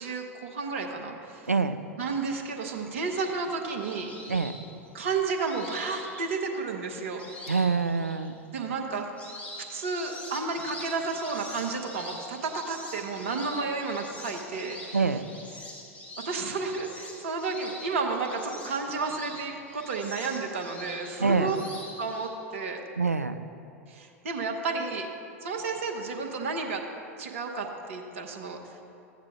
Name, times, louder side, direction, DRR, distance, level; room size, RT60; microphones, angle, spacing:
voice 1, 0.0-1.5 2.0-4.1 4.9-7.3 8.5-9.1 9.7-15.2 15.6-15.7 16.2-21.6 22.0-22.8 23.9-25.1 25.4-26.9 27.2-28.7, right 4 dB, 60° right, 3 dB, 1.1 m, -32 dB
voice 2, 1.5-1.8 4.3-4.6 7.5-8.3 14.9-15.2 21.2-21.5 23.0-23.4, right 4 dB, 85° right, 11 dB, 0.4 m, -25 dB
sound 1, 3.2-6.6 7.2-8.3 8.7-22.3, left 1 dB, 20° left, 2.2 m, -44 dB
14.5 x 8.8 x 2.4 m, 2.6 s
figure-of-eight pair, 85°, 8 cm